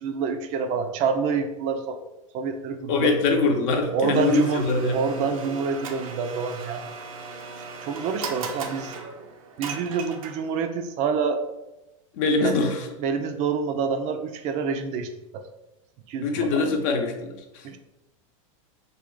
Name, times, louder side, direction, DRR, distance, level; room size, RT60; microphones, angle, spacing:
voice 1, 0.0-2.0 2.3-3.1 3.9-4.7 4.9-6.8 7.8-8.9 9.6-11.4 12.4-12.5 13.0-15.5 16.1-16.6 17.6-17.8, right 5 dB, 45° right, 7 dB, 0.4 m, -27 dB
voice 2, 2.9-5.3 12.1-12.9 16.2-17.7, left 3 dB, 55° left, 3 dB, 0.7 m, -23 dB
Domestic sounds home sounds, 4.1-10.6, right 4 dB, 85° right, 0.6 m, -37 dB
3.3 x 2.3 x 3.7 m, 0.95 s
hypercardioid pair, 120°, 17 cm